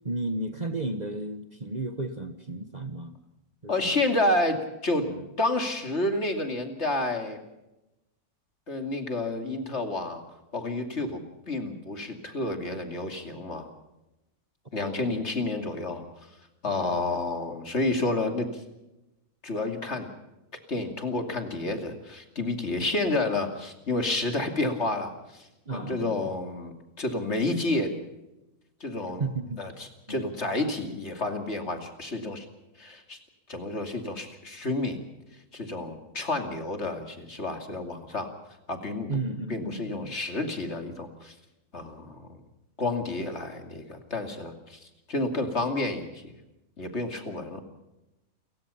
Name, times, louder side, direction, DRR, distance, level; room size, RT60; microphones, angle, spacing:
voice 1, 0.0-3.1 3.6-4.0 5.0-5.3 14.7-15.2 16.7-17.0 25.7-26.4 29.2-29.6 30.1-30.3 39.1-40.1, right 2 dB, 30° right, 7 dB, 1.4 m, -34 dB
voice 2, 3.7-5.0 5.4-7.4 8.7-10.2 10.5-11.2 11.5-13.7 14.7-16.0 16.6-18.6 19.4-20.1 20.7-27.9 28.8-29.2 29.6-29.7 30.1-32.4 32.8-33.2 33.5-35.0 35.5-38.3 38.7-39.1 39.5-41.3 41.7-42.4 42.8-44.8 45.1-46.3 46.8-47.6, left 2 dB, 45° left, 5 dB, 2.9 m, -30 dB
29.5 x 15.5 x 5.7 m, 0.96 s
omnidirectional pair, 1.6 m